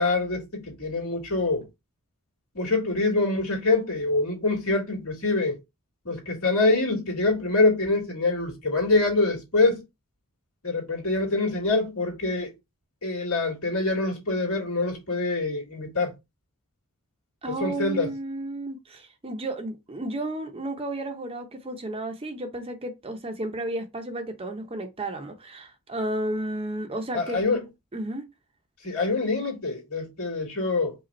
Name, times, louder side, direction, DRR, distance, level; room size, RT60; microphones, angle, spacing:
voice 1, 0.0-1.7 2.5-5.6 6.0-9.8 10.6-12.5 13.0-16.1 17.5-18.1 27.1-27.6 28.8-31.0, left 3 dB, 70° left, 2.2 m, -25 dB
voice 2, 17.4-27.4 27.9-28.2, right 1 dB, 25° right, 0.7 m, -32 dB
5.1 x 2.3 x 4.1 m
head